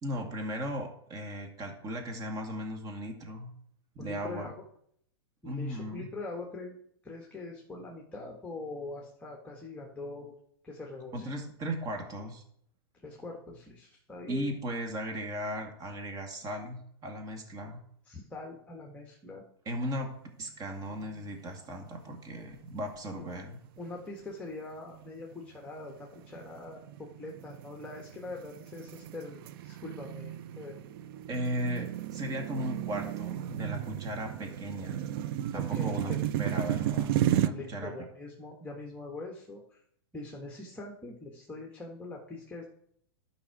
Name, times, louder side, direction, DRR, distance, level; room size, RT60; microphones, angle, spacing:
voice 1, 0.0-3.5 4.0-4.5 5.5-6.1 11.1-12.4 14.3-17.8 19.7-20.1 20.4-23.6 31.3-35.1 35.5-37.9, equal, 25° right, 3 dB, 2.2 m, -36 dB
voice 2, 4.0-4.5 5.4-6.8 7.0-10.3 10.6-11.3 13.0-14.5 18.0-19.4 23.1-23.2 23.8-30.8 35.5-36.2 37.5-39.8 40.1-42.6, left 2 dB, 10° left, -1 dB, 1.5 m, -43 dB
sound 1, 21.0-21.6 21.9-22.0 22.7-23.2 23.8-24.0 24.6-37.5, right 12 dB, 60° right, 0.6 m, -34 dB
12.0 x 5.6 x 4.8 m, 0.68 s
hypercardioid pair, 125°, 14 cm